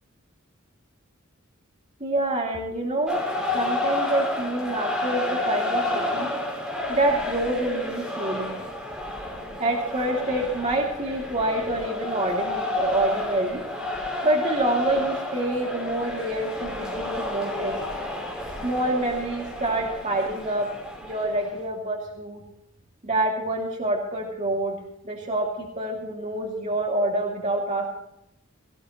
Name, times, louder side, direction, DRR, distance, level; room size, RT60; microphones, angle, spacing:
voice 1, 2.0-3.3 3.5-6.3 6.9-8.6 9.6-13.6 14.2-17.8 18.6-20.7 21.0-22.4 23.0-24.8 25.0-27.9, right 1 dB, 35° right, -2 dB, 2.7 m, -26 dB
sound 1, 3.1-21.6, left 2 dB, 5° right, 5.1 m, -31 dB
18.5 x 15.5 x 3.1 m, 0.76 s
head